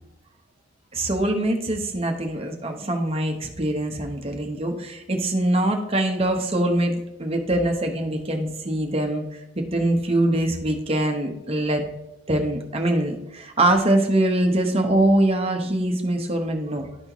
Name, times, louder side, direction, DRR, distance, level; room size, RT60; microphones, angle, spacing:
voice 1, 0.9-9.3 9.5-11.8 12.3-16.9, right 1 dB, 30° right, 4 dB, 0.9 m, -23 dB
11.5 x 4.2 x 3.0 m, 0.92 s
head